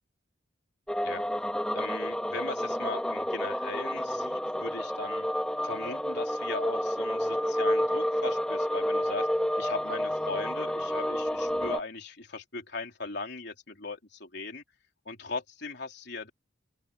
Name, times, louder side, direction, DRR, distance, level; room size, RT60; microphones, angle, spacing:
sound 1, 0.9-11.8, equal, 5° left, 2.2 m, -30 dB
voice 1, 1.7-5.3 5.6-9.3 9.6-14.6 15.1-16.3, left 3 dB, 55° left, 3.7 m, -39 dB
open air
head